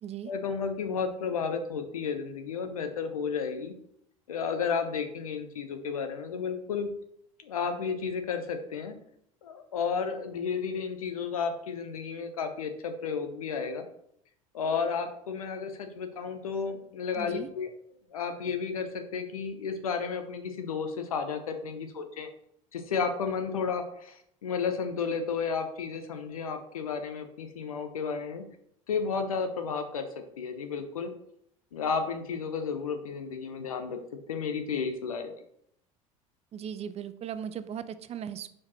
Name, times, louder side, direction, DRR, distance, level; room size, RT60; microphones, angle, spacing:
voice 1, 0.3-3.7 4.3-6.9 7.4-9.0 9.4-13.8 14.5-17.7 18.1-22.3 22.7-28.4 28.9-30.1 30.4-31.1 31.7-34.0 34.3-35.3, left 5 dB, 85° left, 7 dB, 0.9 m, -32 dB
voice 2, 17.1-17.5 36.5-38.5, right 8 dB, 35° right, 13 dB, 0.5 m, -38 dB
5.0 x 4.7 x 4.2 m, 0.71 s
hypercardioid pair, 75°, 18 cm